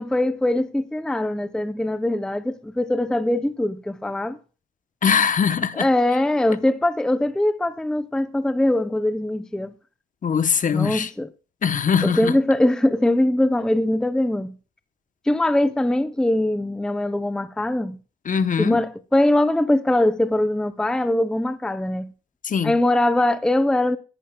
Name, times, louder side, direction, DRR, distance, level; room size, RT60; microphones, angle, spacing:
voice 1, 0.0-4.4 5.7-9.7 10.7-11.3 12.0-14.5 15.3-18.0 18.6-22.1 22.6-24.0, left 1 dB, 5° left, 0.5 m, -22 dB
voice 2, 5.0-5.9 10.2-11.1 11.6-12.3 18.2-18.8 22.4-22.7, left 7 dB, 40° left, 0.8 m, -21 dB
16.0 x 11.0 x 2.2 m
cardioid pair, 90°, 20 cm